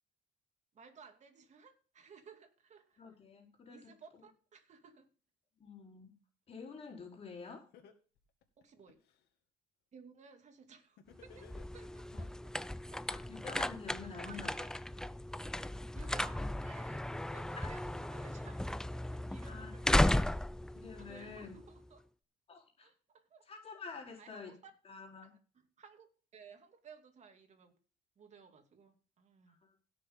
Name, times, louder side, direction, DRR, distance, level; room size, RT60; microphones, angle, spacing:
voice 1, 0.7-3.0 3.7-5.1 8.6-9.0 9.9-12.5 12.9-13.0 14.0-14.8 15.9-18.6 18.9-20.2 21.0-22.0 22.8-23.5 24.2-24.7 25.2-27.7 28.2-29.6, right 6 dB, 45° right, 2.6 m, -58 dB
voice 2, 3.0-3.9 5.6-6.1 6.5-7.6 12.1-12.2 13.1-14.5 17.6-17.7 19.5-19.7 20.7-21.6 22.5-22.9 23.5-24.6 24.8-25.3 29.5-29.7, left 5 dB, 35° left, 4.2 m, -48 dB
Laughter, 7.2-7.3 7.7-9.2 11.0-12.2, left 8 dB, 75° left, 2.1 m, -58 dB
sound 1, 11.2-21.9, left 1 dB, 5° left, 0.4 m, -36 dB
17.0 x 6.5 x 3.8 m
cardioid pair, 110°, 17 cm